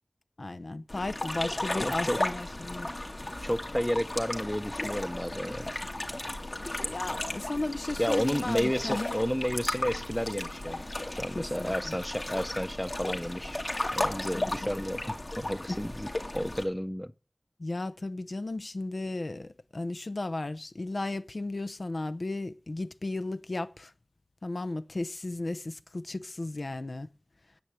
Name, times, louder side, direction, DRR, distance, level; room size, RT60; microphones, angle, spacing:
voice 1, 0.4-2.9 6.8-9.1 11.3-11.9 14.3-14.7 15.7-15.8 17.6-23.9 24.4-27.1, left 2 dB, 80° left, 0.7 m, -35 dB
sound 1, 0.9-16.6, left 1 dB, 65° left, 2.4 m, -35 dB
voice 2, 1.7-2.2 3.4-5.7 8.0-10.8 11.2-13.6 13.9-17.1, equal, 10° left, 0.7 m, -31 dB
9.9 x 7.7 x 8.7 m
wide cardioid pair, 45°, 0 cm